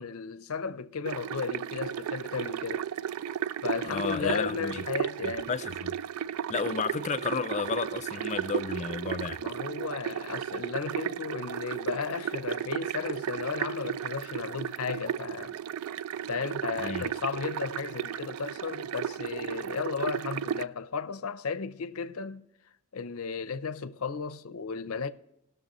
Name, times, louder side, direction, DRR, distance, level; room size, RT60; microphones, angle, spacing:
voice 1, 0.0-2.9 3.6-5.5 6.7-6.8 9.4-15.5 16.3-22.5 22.9-25.1, left 5 dB, 90° left, 0.6 m, -34 dB
sound 1, 1.1-20.6, right 9 dB, 90° right, 0.3 m, -34 dB
voice 2, 3.9-4.8 5.2-5.9 6.5-9.4 16.8-17.0, left 5 dB, 35° left, 0.4 m, -32 dB
19.5 x 6.7 x 3.0 m
head